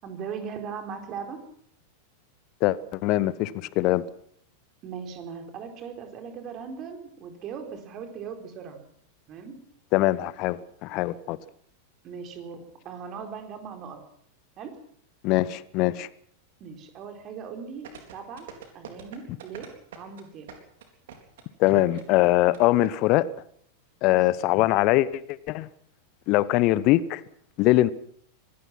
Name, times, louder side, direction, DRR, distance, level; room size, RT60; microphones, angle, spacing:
voice 1, 0.0-1.4 4.8-8.8 9.3-9.6 12.0-14.0 14.6-14.7 16.6-18.5 18.7-19.7 20.0-20.5 24.1-24.2, right 6 dB, 35° right, 4.3 m, -39 dB
voice 2, 2.6-4.0 9.9-11.4 15.2-16.1 21.6-23.3 24.0-25.2 25.5-25.7 26.3-27.2 27.6-27.9, left 16 dB, 40° left, 1.0 m, -22 dB
sound 1, 17.8-22.9 23.2-23.3, right 8 dB, 55° right, 4.0 m, -44 dB
24.5 x 18.0 x 6.1 m
figure-of-eight pair, 90°, 0 cm